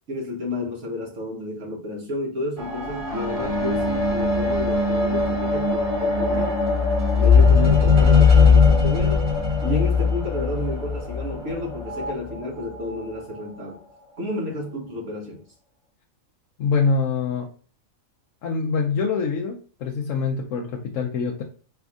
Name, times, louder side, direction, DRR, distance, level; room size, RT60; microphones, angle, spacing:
voice 1, 0.1-6.6 7.1-9.3 9.6-13.8 14.2-15.4, left 2 dB, 60° right, 1.5 m, -31 dB
sound 1, 2.6-12.1 12.9-13.0, left 4 dB, 25° right, 1.7 m, -19 dB
voice 2, 16.6-17.5 18.4-21.4, left 5 dB, 70° left, 1.0 m, -24 dB
4.9 x 3.4 x 2.4 m
omnidirectional pair, 1.5 m